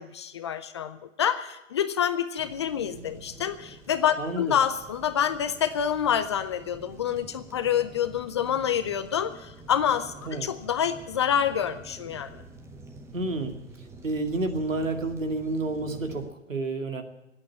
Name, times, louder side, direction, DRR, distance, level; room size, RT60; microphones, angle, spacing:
voice 1, 0.0-10.1 10.4-12.4, left 9 dB, 25° left, 11 dB, 0.5 m, -27 dB
sound 1, 2.4-16.3, right 3 dB, 5° right, 0.8 m, -47 dB
voice 2, 4.2-4.5 10.3-10.5 13.1-13.5 14.0-17.0, right 2 dB, 85° right, 5 dB, 2.5 m, -30 dB
19.0 x 8.8 x 8.4 m, 0.91 s
hypercardioid pair, 135°, 38 cm